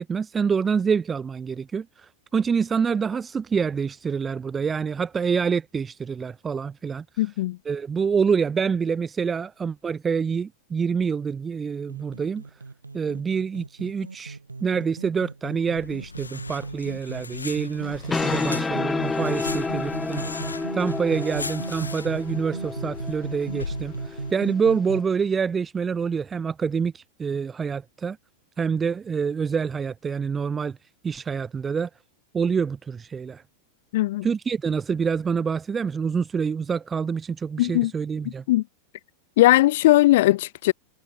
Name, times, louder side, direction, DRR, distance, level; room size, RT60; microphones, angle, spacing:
voice 1, 0.0-7.0 7.6-12.4 12.9-20.4 20.7-28.2 28.6-30.8 31.0-31.9 32.3-33.4 34.2-38.4, right 6 dB, 20° right, 1.5 m, -26 dB
voice 2, 7.2-7.6 33.9-34.3 37.6-37.9 38.2-38.6 39.4-40.7, left 17 dB, 55° left, 1.2 m, -19 dB
sound 1, 11.9-25.0, right 3 dB, 80° right, 2.1 m, -37 dB
sound 2, 15.8-24.3, left 4 dB, 80° left, 5.0 m, -38 dB
sound 3, 17.8-25.0, left 4 dB, 10° left, 0.9 m, -30 dB
figure-of-eight pair, 90°, 0 cm